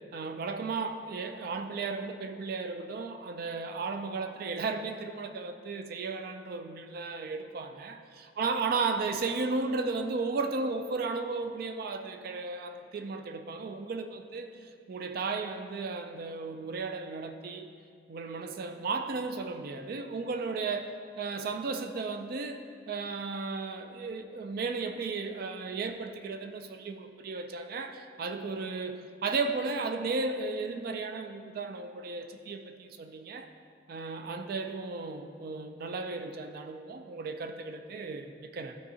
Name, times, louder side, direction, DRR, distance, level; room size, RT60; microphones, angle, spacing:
voice 1, 0.1-14.5 14.9-17.7 18.1-33.5 33.9-38.8, right 4 dB, 55° right, 7 dB, 0.3 m, -35 dB
12.0 x 4.6 x 2.8 m, 2.2 s
head